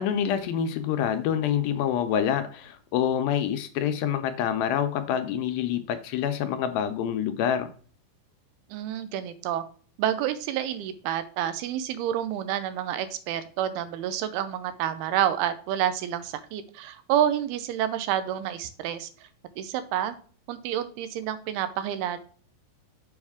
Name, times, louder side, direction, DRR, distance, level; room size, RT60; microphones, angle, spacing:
voice 1, 0.0-7.7, left 9 dB, 80° left, 8 dB, 2.3 m, -26 dB
voice 2, 8.7-9.6 10.0-19.1 19.6-20.2 20.5-22.2, right 11 dB, 90° right, 12 dB, 2.6 m, -29 dB
7.1 x 5.3 x 3.5 m, 0.44 s
omnidirectional pair, 4.4 m